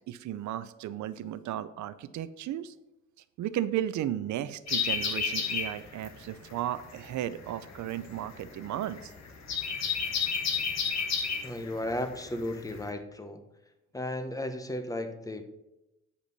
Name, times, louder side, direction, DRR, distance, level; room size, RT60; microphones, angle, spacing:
voice 1, 0.0-2.7 3.4-9.1, right 12 dB, 70° right, 14 dB, 0.6 m, -34 dB
sound 1, 4.7-12.9, left 6 dB, 60° left, 1.3 m, -32 dB
voice 2, 11.4-13.4 13.9-15.4, left 1 dB, 10° left, 8 dB, 1.0 m, -34 dB
8.4 x 5.2 x 5.3 m, 0.94 s
cardioid pair, 90°, 30 cm